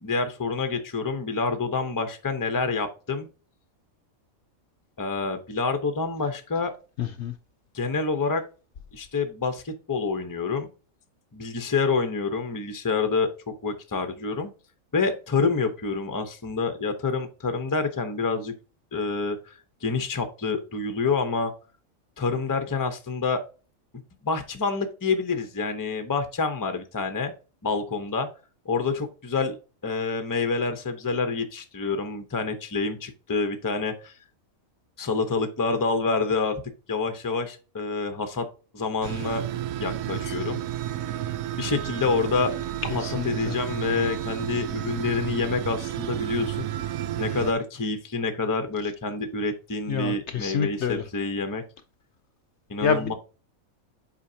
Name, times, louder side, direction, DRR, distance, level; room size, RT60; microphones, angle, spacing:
voice 1, 0.0-3.3 5.0-6.7 7.7-8.4 8.9-10.7 11.3-14.5 14.9-18.5 18.9-21.5 22.2-23.4 24.2-27.3 27.6-28.3 28.6-29.6 29.8-34.1 35.0-36.6 36.9-38.5 38.7-39.4 39.8-40.6 41.5-42.5 42.8-46.7 47.2-51.6 52.7-53.1, left 4 dB, 20° left, 0.7 m, -27 dB
voice 2, 7.0-7.3 42.9-43.5 49.9-51.0 52.8-53.1, left 7 dB, 60° left, 0.9 m, -27 dB
sound 1, 39.0-47.5, right 12 dB, 80° right, 1.0 m, -31 dB
8.1 x 5.0 x 2.8 m
omnidirectional pair, 1.5 m